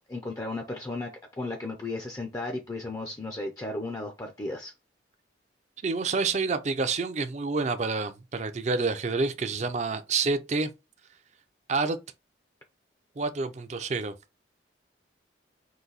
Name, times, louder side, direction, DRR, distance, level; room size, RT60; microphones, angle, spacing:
voice 1, 0.1-1.1 1.4-4.7, left 2 dB, 20° left, 0.5 m, -34 dB
voice 2, 5.8-10.7 11.7-12.0 13.2-14.1, right 4 dB, 40° right, 0.4 m, -28 dB
3.9 x 2.6 x 3.9 m
head